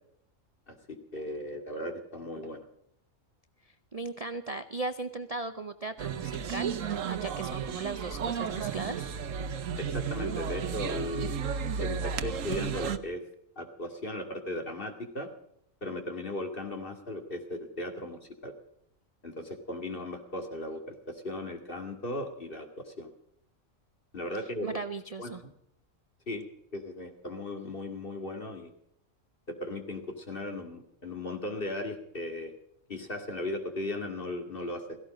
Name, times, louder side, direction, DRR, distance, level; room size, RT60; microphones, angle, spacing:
voice 1, 0.7-2.7 9.8-11.3 11.8-13.2 13.6-15.3 15.8-18.5 19.2-23.1 24.1-24.8 25.2-25.3 26.3-26.4 26.7-28.7 29.5-32.6 32.9-35.0, left 1 dB, 40° left, 5 dB, 2.5 m, -37 dB
voice 2, 3.6-6.8 7.1-9.1 24.6-25.4, right 3 dB, 35° right, 9 dB, 0.6 m, -37 dB
sound 1, 6.0-13.0, right 7 dB, 70° right, 1.3 m, -33 dB
16.5 x 15.5 x 5.1 m, 0.73 s
omnidirectional pair, 1.4 m